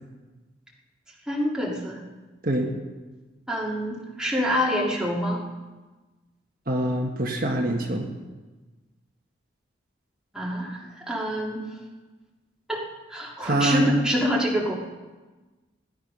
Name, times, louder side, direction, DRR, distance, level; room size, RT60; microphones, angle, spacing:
voice 1, 1.3-2.0 3.5-5.4 10.3-11.7 12.7-12.8 13.1-14.7, equal, 5° right, -4 dB, 2.3 m, -26 dB
voice 2, 6.7-8.1 13.4-13.9, right 1 dB, 50° right, 0 dB, 1.5 m, -24 dB
17.0 x 11.0 x 5.5 m, 1.2 s
head